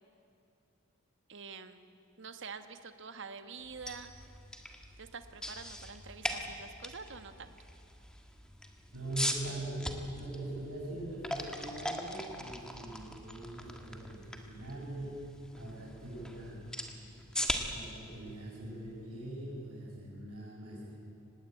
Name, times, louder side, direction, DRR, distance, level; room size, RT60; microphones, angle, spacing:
voice 1, 1.3-1.8 2.2-4.1 5.0-7.5, right 5 dB, 55° right, 8 dB, 1.3 m, -46 dB
sound 1, 3.6-19.6, equal, 5° left, 1.6 m, -41 dB
voice 2, 8.9-16.7 17.5-20.9, right 1 dB, 90° right, -9 dB, 7.5 m, -42 dB
25.0 x 19.5 x 9.3 m, 2.7 s
head